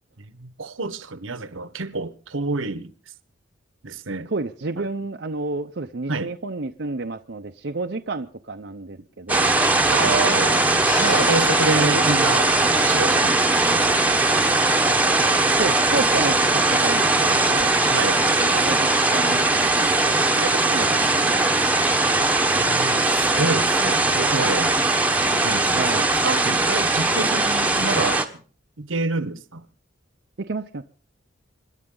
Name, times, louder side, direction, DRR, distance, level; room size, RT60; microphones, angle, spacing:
voice 1, 0.2-2.9 3.8-4.3 4.8-4.9 6.1-6.3 9.9-10.8 11.3-14.2 17.8-18.2 18.5-18.7 22.5-24.7 25.3-28.4 28.8-29.6, right 3 dB, 80° right, 1.2 m, -28 dB
voice 2, 4.3-9.6 11.0-11.3 11.8-12.1 15.6-17.7 18.1-21.9 25.7-26.1 30.4-30.8, right 3 dB, 55° right, 0.7 m, -31 dB
sound 1, 9.3-28.3, right 2 dB, 10° right, 1.0 m, -20 dB
sound 2, 10.9-14.9, left 3 dB, 85° left, 2.6 m, -35 dB
26.5 x 11.0 x 3.8 m
head